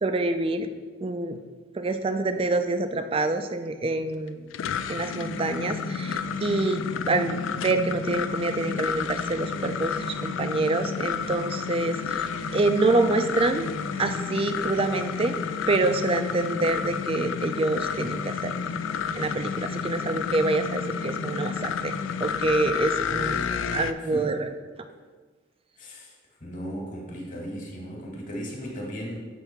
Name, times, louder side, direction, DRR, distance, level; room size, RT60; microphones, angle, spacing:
voice 1, 0.0-0.7 1.0-1.4 1.7-4.4 4.9-13.7 14.0-15.3 15.7-18.6 19.1-21.9 22.2-24.5, right 2 dB, 30° right, 9 dB, 0.4 m, -26 dB
sound 1, 4.3-23.9, left 6 dB, 75° left, 0.3 m, -30 dB
voice 2, 24.0-24.4 25.8-26.1 26.4-29.2, equal, 40° left, -1 dB, 1.5 m, -36 dB
7.3 x 3.4 x 5.7 m, 1.4 s
head